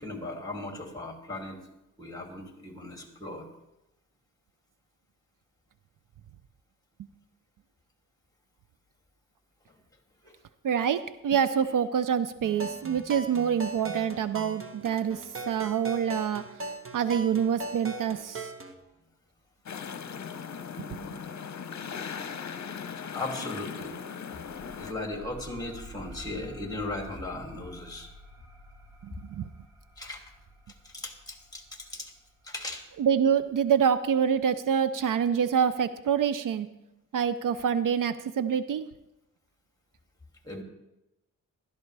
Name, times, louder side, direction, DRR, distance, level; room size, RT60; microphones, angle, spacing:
voice 1, 0.0-1.6 2.0-3.5 10.2-10.4 22.9-24.0 24.8-28.1 30.0-30.2 30.8-32.1 32.4-32.8 40.4-40.6, left 2 dB, 10° left, 2 dB, 2.6 m, -37 dB
voice 2, 10.6-15.2 15.5-16.4 16.9-18.5 20.8-21.0 29.0-29.5 33.0-36.7 37.1-38.9, right 8 dB, 65° right, 13 dB, 0.6 m, -26 dB
sound 1, 12.4-18.7, right 2 dB, 40° right, 1.2 m, -39 dB
sound 2, 19.7-24.9, left 7 dB, 55° left, 0.9 m, -38 dB
sound 3, 24.5-33.7, equal, 15° right, 3.1 m, -50 dB
15.5 x 13.0 x 3.3 m, 0.92 s
cardioid pair, 85°, 34 cm